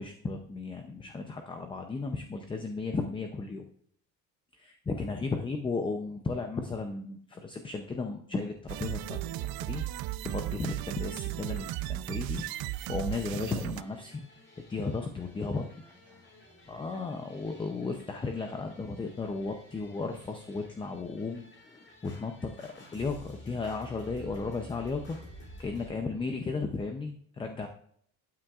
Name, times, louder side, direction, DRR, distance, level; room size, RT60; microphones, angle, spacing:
voice 1, 0.0-3.7 4.6-14.3 14.7-15.6 16.7-25.2 25.6-27.7, left 4 dB, 15° left, 5 dB, 0.5 m, -35 dB
sound 1, 8.7-13.8, right 16 dB, 70° right, 0.5 m, -35 dB
sound 2, 12.3-25.9, left 1 dB, 30° left, 3.2 m, -52 dB
voice 2, 15.2-16.9 25.4-25.7, right 1 dB, 5° right, -4 dB, 3.6 m, -63 dB
12.5 x 8.9 x 2.4 m, 0.65 s
cardioid pair, 160°, 38 cm